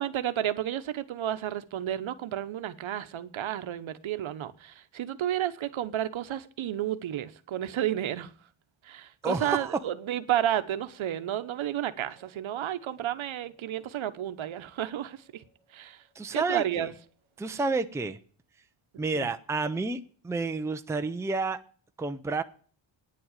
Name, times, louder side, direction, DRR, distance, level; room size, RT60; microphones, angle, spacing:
voice 1, 0.0-8.3 8.8-15.4 15.7-16.0 16.3-16.9 19.2-19.3, right 11 dB, 70° right, 1.1 m, -31 dB
voice 2, 9.2-9.8 16.2-16.9 17.4-18.2 19.0-21.6 22.0-22.4, right 3 dB, 5° right, 0.6 m, -30 dB
sound 1, 11.0-17.4, left 1 dB, 45° left, 4.4 m, -66 dB
9.8 x 7.7 x 8.8 m
wide cardioid pair, 145°, 49 cm